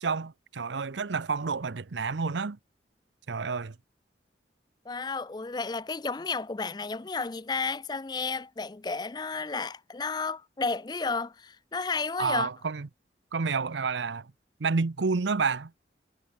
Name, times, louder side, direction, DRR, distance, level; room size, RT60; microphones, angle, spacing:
voice 1, 0.0-2.6 3.3-3.7 12.2-12.9 13.3-14.3 14.6-15.7, right 4 dB, 85° right, 0.7 m, -29 dB
voice 2, 4.9-12.5, left 4 dB, 25° left, 0.4 m, -32 dB
head